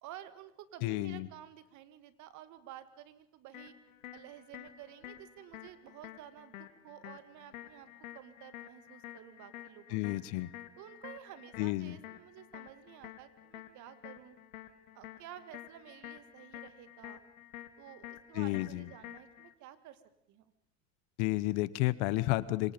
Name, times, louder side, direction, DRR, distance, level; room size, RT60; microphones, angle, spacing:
voice 1, 0.0-3.8 4.1-10.0 10.8-14.4 14.9-17.2 17.8-20.0 20.3-20.5, right 12 dB, 45° right, 12 dB, 1.9 m, -52 dB
voice 2, 0.8-1.3 9.9-10.5 11.6-12.0 18.3-18.9 21.2-22.7, left 19 dB, 60° left, 18 dB, 1.1 m, -31 dB
sound 1, 3.5-19.5, left 13 dB, 90° left, 2.3 m, -50 dB
28.0 x 25.5 x 5.2 m, 0.79 s
supercardioid pair, 125°, 40 cm